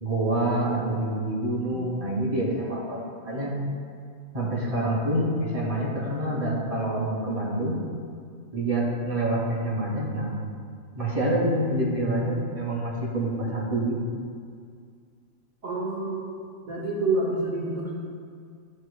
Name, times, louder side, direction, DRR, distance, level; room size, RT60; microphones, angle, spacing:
voice 1, 0.0-3.5 4.3-7.8 8.5-10.3 10.9-14.2, right 1 dB, 25° right, -6 dB, 2.2 m, -27 dB
voice 2, 15.6-16.4 16.7-17.9, right 2 dB, 70° right, -5 dB, 1.6 m, -28 dB
12.5 x 6.3 x 2.2 m, 2.1 s
omnidirectional pair, 1.4 m